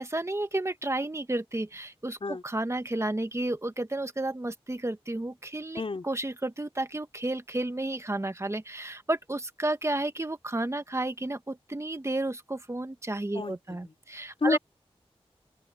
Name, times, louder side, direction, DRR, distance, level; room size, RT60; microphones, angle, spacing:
voice 1, 0.0-14.6, right 2 dB, 25° right, 1.8 m, -32 dB
voice 2, 13.3-13.9 14.4-14.6, left 3 dB, 60° left, 3.9 m, -30 dB
open air
wide cardioid pair, 60°, 11 cm